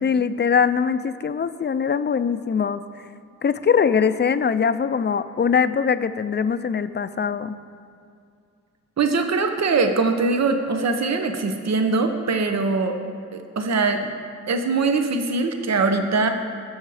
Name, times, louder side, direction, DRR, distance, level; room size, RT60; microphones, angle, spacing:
voice 1, 0.0-2.8 3.4-7.6, left 6 dB, 35° left, 12 dB, 0.5 m, -22 dB
voice 2, 9.0-12.9 13.6-14.1 14.5-16.3, right 3 dB, 60° right, 6 dB, 0.9 m, -22 dB
21.0 x 7.2 x 4.9 m, 2.4 s
wide cardioid pair, 115°, 29 cm